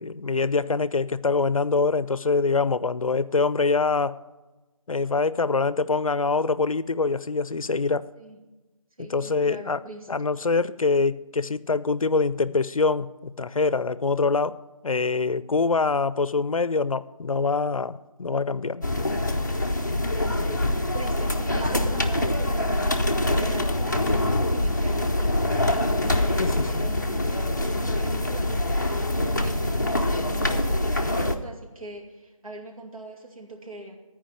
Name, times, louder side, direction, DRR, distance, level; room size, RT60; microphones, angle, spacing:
voice 1, 0.0-4.2 4.9-8.1 9.0-9.8 10.1-18.8 26.4-26.9, left 4 dB, 80° left, 0.5 m, -24 dB
voice 2, 9.0-10.1 19.7-34.0, right 2 dB, 85° right, 2.5 m, -41 dB
sound 1, 18.8-31.4, left 1 dB, 35° left, 0.6 m, -24 dB
13.5 x 4.9 x 8.8 m
figure-of-eight pair, 175°, 18 cm